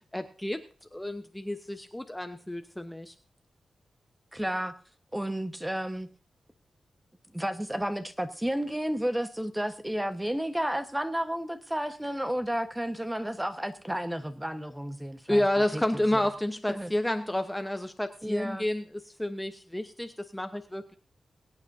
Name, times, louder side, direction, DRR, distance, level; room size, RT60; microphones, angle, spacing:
voice 1, 0.1-0.6 0.9-3.1 15.3-21.0, left 1 dB, 10° left, 0.9 m, -30 dB
voice 2, 4.3-4.7 5.1-6.1 7.3-15.4 15.7-16.2 16.7-16.9 18.2-18.7, equal, 10° right, 1.2 m, -32 dB
22.5 x 9.0 x 2.7 m
cardioid pair, 65°, 0 cm